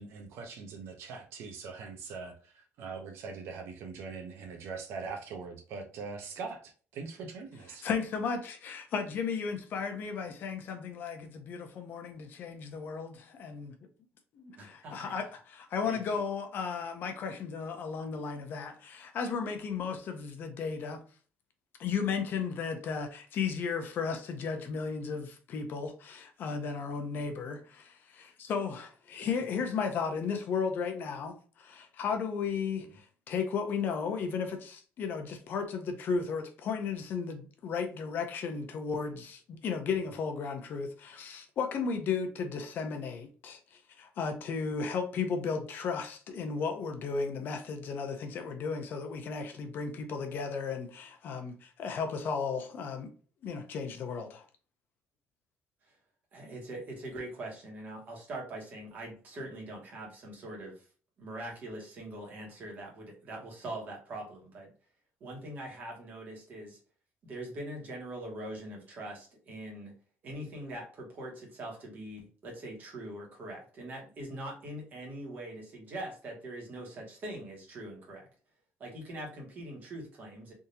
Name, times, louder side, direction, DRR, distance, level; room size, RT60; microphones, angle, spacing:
voice 1, 0.0-7.9, right 5 dB, 65° right, 0.8 m, -42 dB
voice 2, 7.8-13.8 14.3-21.0 21.8-53.1 53.4-54.4, left 5 dB, 45° left, 0.6 m, -34 dB
voice 3, 14.6-15.1 15.9-16.2 29.2-29.3 56.3-60.7 61.2-64.7 65.2-66.8 67.2-69.9 70.2-78.3 78.8-80.5, right 1 dB, 40° right, 1.4 m, -42 dB
3.5 x 2.7 x 2.8 m
cardioid pair, 175°, 5 cm